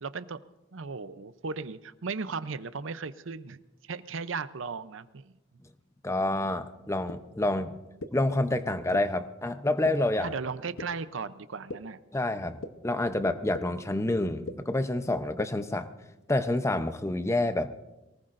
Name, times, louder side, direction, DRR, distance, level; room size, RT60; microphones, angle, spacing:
voice 1, 0.0-0.4 0.7-3.6 3.9-5.3 10.2-12.0, right 4 dB, 75° right, 13 dB, 0.7 m, -36 dB
voice 2, 6.0-7.7 8.1-10.3 12.1-15.9 16.3-17.7, left 2 dB, 15° left, 10 dB, 0.7 m, -28 dB
sound 1, 7.1-7.2 8.0-8.1 8.9-9.0 9.8-9.9 10.8-10.9 11.7-11.8 12.6-12.7 13.5-13.6 14.5-14.6 15.4-15.5, left 2 dB, 80° left, 0.9 m, -36 dB
23.5 x 18.5 x 2.6 m, 1.0 s
head